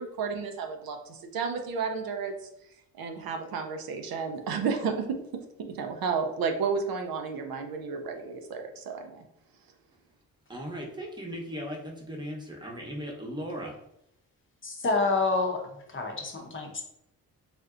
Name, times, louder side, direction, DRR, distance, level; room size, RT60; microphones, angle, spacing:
voice 1, 0.0-2.3 3.0-9.2, right 5 dB, 75° right, 5 dB, 0.5 m, -32 dB
voice 2, 10.5-13.7, equal, 10° right, -1 dB, 0.8 m, -37 dB
voice 3, 14.6-15.6 15.9-16.8, left 3 dB, 35° left, 2 dB, 0.6 m, -28 dB
3.4 x 2.6 x 2.4 m, 0.79 s
cardioid pair, 65°, 36 cm